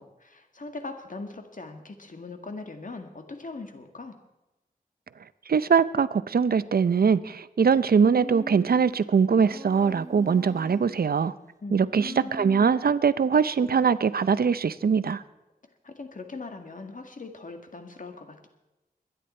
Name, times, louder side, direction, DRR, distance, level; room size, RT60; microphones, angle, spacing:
voice 1, 0.0-4.2 11.6-12.3 15.8-18.5, left 3 dB, 55° left, 5 dB, 1.9 m, -40 dB
voice 2, 5.5-11.3 11.7-15.2, right 6 dB, 75° right, 15 dB, 0.6 m, -22 dB
Human voice, 8.0-8.9 9.5-11.0 11.9-13.2, right 1 dB, 20° right, 0.9 m, -41 dB
22.0 x 10.5 x 4.4 m, 0.99 s
wide cardioid pair, 65°, 16 cm